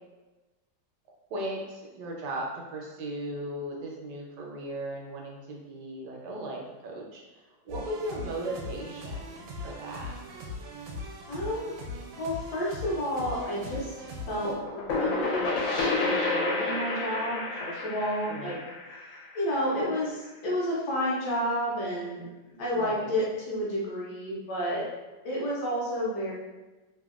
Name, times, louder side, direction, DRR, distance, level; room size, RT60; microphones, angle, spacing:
voice 1, 1.3-10.1 18.3-18.6 22.7-23.1, right 1 dB, 75° right, -1 dB, 1.1 m, -37 dB
sound 1, 7.7-14.5, left 1 dB, 90° right, 1.3 m, -40 dB
voice 2, 11.3-11.7 12.1-18.6 19.3-22.2 22.6-24.9 25.2-26.3, equal, 70° left, -6 dB, 1.2 m, -31 dB
sound 2, 14.4-20.0, left 3 dB, 85° left, 1.4 m, -30 dB
3.3 x 2.1 x 2.3 m, 1.1 s
omnidirectional pair, 2.0 m